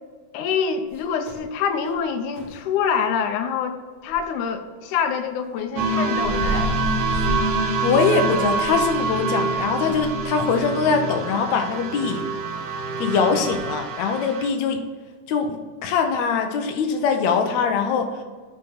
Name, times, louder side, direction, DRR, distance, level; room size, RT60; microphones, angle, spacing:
voice 1, 0.3-3.8 4.0-6.8, left 7 dB, 90° left, 7 dB, 2.2 m, -25 dB
sound 1, 0.9-1.5 1.9-2.0 2.4-2.6 4.1-4.2 5.8-10.2 10.5-10.8, equal, 25° left, 2.0 m, -32 dB
sound 2, 5.8-14.5, right 3 dB, 85° right, 2.6 m, -26 dB
voice 2, 7.8-12.2 13.0-14.8 15.3-18.1, left 5 dB, 75° left, 5 dB, 2.0 m, -22 dB
8.8 x 4.4 x 5.4 m, 1.5 s
omnidirectional pair, 3.5 m